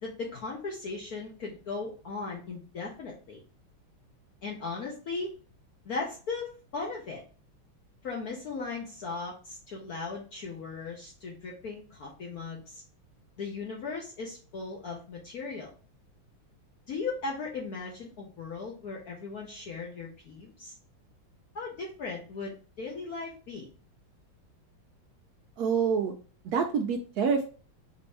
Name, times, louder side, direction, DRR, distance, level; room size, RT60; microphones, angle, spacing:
voice 1, 0.0-3.4 4.4-5.4 5.8-7.2 8.0-12.8 13.4-15.7 16.9-20.7 21.5-23.7, left 4 dB, 60° left, -2 dB, 1.1 m, -37 dB
voice 2, 25.6-26.1 26.4-27.5, right 6 dB, 80° right, 5 dB, 0.8 m, -27 dB
5.2 x 2.7 x 3.3 m, 0.38 s
omnidirectional pair, 2.2 m